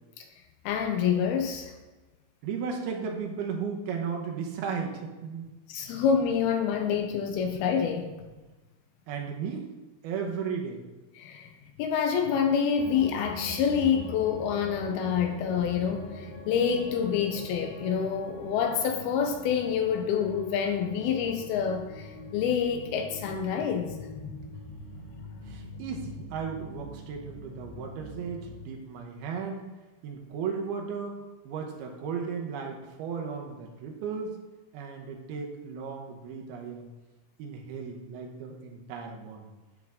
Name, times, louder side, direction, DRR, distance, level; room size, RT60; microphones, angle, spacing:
voice 1, 0.7-1.7 5.7-8.1 11.2-24.4, left 7 dB, 80° left, 5 dB, 2.4 m, -27 dB
voice 2, 2.4-5.5 9.1-9.7 10.0-10.8 25.4-29.8 30.0-34.4 34.7-36.9 37.4-39.5, right 6 dB, 75° right, 1 dB, 2.8 m, -35 dB
sound 1, 12.8-28.6, left 2 dB, 60° left, 3.5 m, -43 dB
10.5 x 5.8 x 3.6 m, 1.2 s
omnidirectional pair, 4.7 m